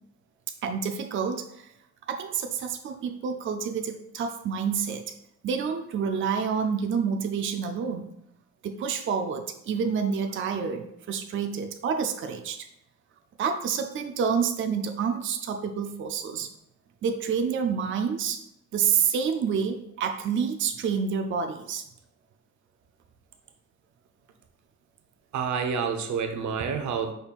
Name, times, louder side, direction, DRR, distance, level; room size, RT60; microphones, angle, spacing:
voice 1, 0.6-1.7 2.1-5.1 5.4-8.1 8.6-12.7 13.4-16.5 17.0-18.4 18.7-21.8, right 6 dB, 45° right, 5 dB, 0.4 m, -28 dB
voice 2, 25.3-27.1, right 6 dB, 80° right, 5 dB, 0.7 m, -28 dB
5.3 x 4.2 x 2.4 m, 0.76 s
wide cardioid pair, 140°, 29 cm